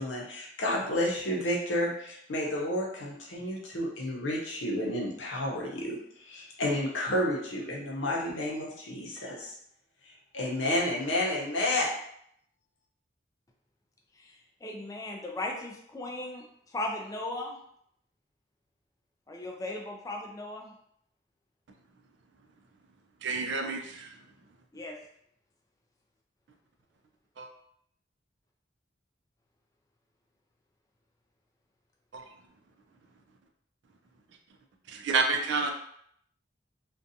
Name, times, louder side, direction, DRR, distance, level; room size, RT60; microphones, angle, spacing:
voice 1, 0.0-9.5 10.3-11.9, left 1 dB, 85° left, -3 dB, 0.8 m, -31 dB
voice 2, 14.6-16.4 16.7-17.6 19.3-20.7 24.7-25.0, left 1 dB, 20° left, 0 dB, 0.3 m, -37 dB
voice 3, 23.2-24.2 27.4-27.5 32.1-32.3 34.9-35.7, right 4 dB, 65° right, 4 dB, 0.4 m, -29 dB
2.5 x 2.3 x 2.6 m, 0.68 s
head